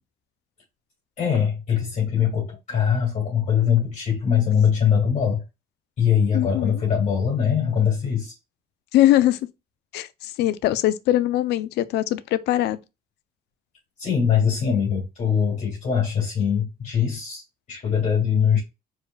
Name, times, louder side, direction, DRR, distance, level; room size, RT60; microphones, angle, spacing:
voice 1, 1.2-5.4 6.0-8.3 14.0-18.6, left 7 dB, 45° left, 2.7 m, -22 dB
voice 2, 6.3-6.8 8.9-9.4 9.9-12.8, left 14 dB, 80° left, 0.6 m, -21 dB
5.2 x 4.5 x 2.3 m
cardioid pair, 110°, 17 cm